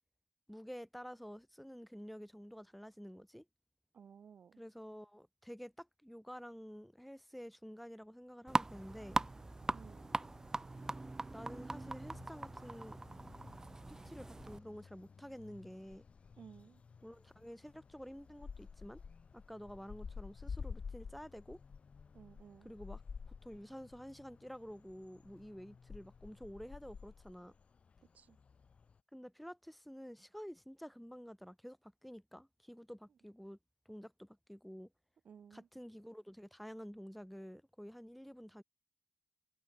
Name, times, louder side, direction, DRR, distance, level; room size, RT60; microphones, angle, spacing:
voice 1, 0.5-3.4 4.6-9.2 11.3-13.0 13.9-16.0 17.0-19.0 19.3-21.6 22.6-23.0 23.3-27.5 29.1-33.6 33.9-34.9 35.5-38.6, equal, ahead, 4.0 m, -50 dB
voice 2, 3.9-4.6 9.7-10.1 16.4-16.8 22.1-22.7 28.1-28.4 35.2-35.7, right 7 dB, 55° right, 6.6 m, -57 dB
sound 1, 8.5-14.6, right 2 dB, 20° right, 1.2 m, -40 dB
sound 2, 9.2-29.0, left 5 dB, 45° left, 1.7 m, -52 dB
cardioid pair, 105°, 3 cm